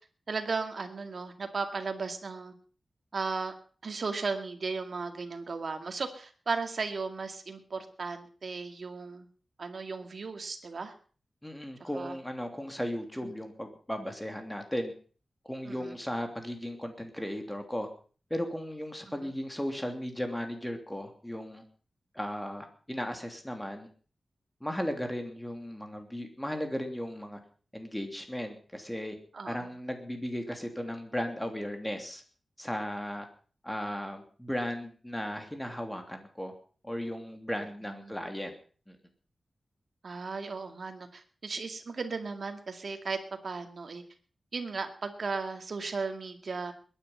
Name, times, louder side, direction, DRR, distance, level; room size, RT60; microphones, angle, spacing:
voice 1, 0.3-2.5 3.1-3.5 3.8-9.3 9.6-10.9 11.8-12.2 13.2-13.3 15.7-16.0 19.2-19.3 29.3-29.7 37.8-38.1 40.0-43.2 43.4-44.0 44.5-46.7, right 4 dB, 60° right, 6 dB, 2.2 m, -36 dB
voice 2, 11.4-14.9 15.5-17.9 18.3-21.6 22.1-23.9 24.6-27.4 27.7-29.2 29.4-32.2 32.6-33.3 33.6-36.5 36.8-38.5 38.9-39.0, equal, 10° left, 5 dB, 2.9 m, -36 dB
21.0 x 10.0 x 5.7 m, 0.41 s
wide cardioid pair, 120°, 0 cm